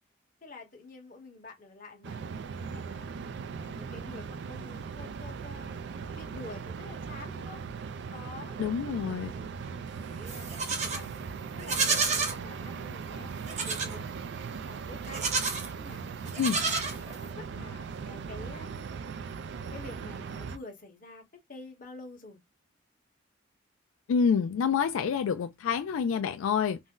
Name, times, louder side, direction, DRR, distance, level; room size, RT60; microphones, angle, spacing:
voice 1, 0.4-2.3 2.6-3.1 3.6-5.7 6.1-7.6 8.1-8.6 9.0-9.6 9.9-15.3 15.7-16.0 16.5-18.9 19.7-21.2 21.5-22.4, left 3 dB, 45° left, 1.0 m, -48 dB
sound 1, 2.0-20.6, right 5 dB, 60° right, 0.3 m, -39 dB
voice 2, 8.6-9.3 16.4-16.6 24.1-26.8, left 6 dB, 85° left, 0.3 m, -27 dB
Livestock farm animals working animals, 10.3-11.0 11.6-12.4 13.5-14.0 15.0-15.7 16.3-17.3, right 4 dB, 35° right, 0.7 m, -30 dB
2.6 x 2.1 x 3.6 m
head